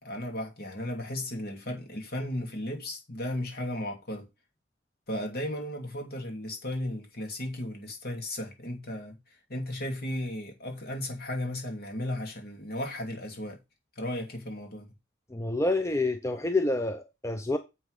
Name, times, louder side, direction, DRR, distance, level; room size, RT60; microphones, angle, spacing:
voice 1, 0.0-4.3 5.1-9.2 9.5-13.6 14.0-14.9, left 1 dB, 55° left, 2.7 m, -35 dB
voice 2, 15.3-17.6, left 2 dB, 15° left, 0.6 m, -28 dB
7.7 x 6.1 x 4.9 m
head